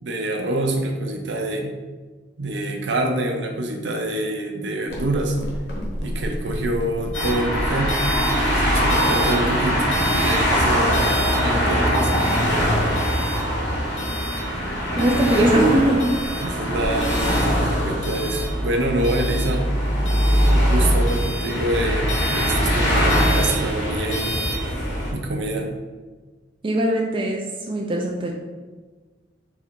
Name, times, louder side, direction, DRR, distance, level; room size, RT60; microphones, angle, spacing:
voice 1, 0.0-1.7 2.4-5.4 6.0-8.0 8.3-9.8 10.1-12.1 16.4-19.7 20.5-24.4 25.1-25.7, right 1 dB, 70° right, 2 dB, 0.6 m, -26 dB
sound 1, 4.9-9.9, equal, 60° left, 0.9 m, -32 dB
sound 2, 7.1-25.1, equal, 85° left, 1.2 m, -21 dB
voice 2, 15.0-16.2 26.6-28.3, right 1 dB, 25° right, 0 dB, 0.4 m, -20 dB
4.1 x 2.5 x 4.4 m, 1.3 s
head